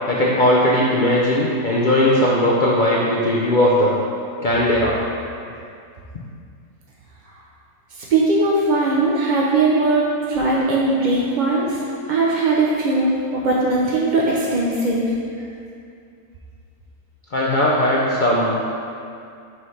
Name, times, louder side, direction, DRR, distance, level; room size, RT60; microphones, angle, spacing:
voice 1, 0.0-4.0 4.4-5.0 17.3-18.6, left 1 dB, 60° left, -5 dB, 0.5 m, -18 dB
voice 2, 8.1-11.8 12.1-15.0, right 2 dB, 60° right, -4 dB, 0.5 m, -19 dB
5.7 x 3.2 x 5.5 m, 2.4 s
omnidirectional pair, 1.5 m